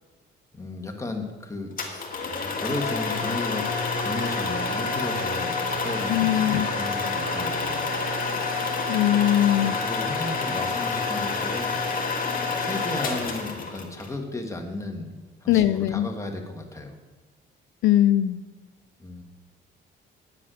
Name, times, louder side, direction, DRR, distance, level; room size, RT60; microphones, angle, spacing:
voice 1, 0.5-2.1 2.6-7.9 9.6-11.7 12.6-15.1 15.4-17.0 19.0-19.2, left 2 dB, 15° left, 3 dB, 1.8 m, -34 dB
sound 1, 1.8-14.1, left 4 dB, 45° left, 2.1 m, -28 dB
voice 2, 6.1-6.6 8.9-9.7 15.5-16.1 17.8-18.4, left 12 dB, 80° left, 13 dB, 0.4 m, -21 dB
9.5 x 7.6 x 6.4 m, 1.2 s
cardioid pair, 90°, 20 cm